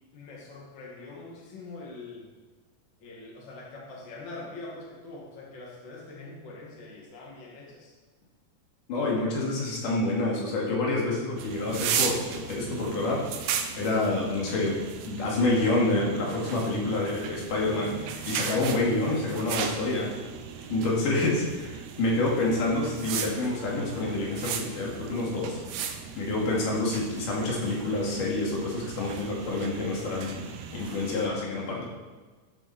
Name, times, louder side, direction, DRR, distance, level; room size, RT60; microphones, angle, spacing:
voice 1, 0.1-2.3 3.0-7.9 26.6-26.7, left 2 dB, 40° left, -3 dB, 2.5 m, -43 dB
voice 2, 8.9-13.2 13.8-14.8 15.0-20.1 20.7-25.6 26.2-31.8, left 2 dB, 75° left, -3 dB, 3.8 m, -28 dB
sound 1, 11.4-31.3, right 7 dB, 70° right, 2.0 m, -36 dB
13.5 x 7.7 x 4.3 m, 1.3 s
omnidirectional pair, 3.7 m